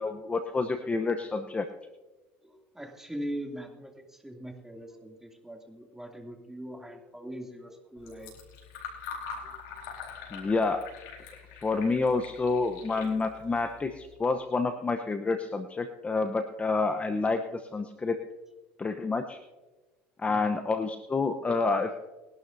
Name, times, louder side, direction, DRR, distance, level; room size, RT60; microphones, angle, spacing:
voice 1, 0.0-1.7 10.3-10.8 11.6-18.2 18.8-19.4 20.2-22.0, left 3 dB, 20° left, 6 dB, 0.8 m, -28 dB
voice 2, 2.4-8.3 9.4-9.6 20.3-20.5, equal, 5° right, 2 dB, 2.7 m, -41 dB
Fill (with liquid), 8.0-14.2, left 6 dB, 75° left, 4.1 m, -44 dB
22.0 x 11.5 x 2.7 m, 1.2 s
supercardioid pair, 90°, 6 cm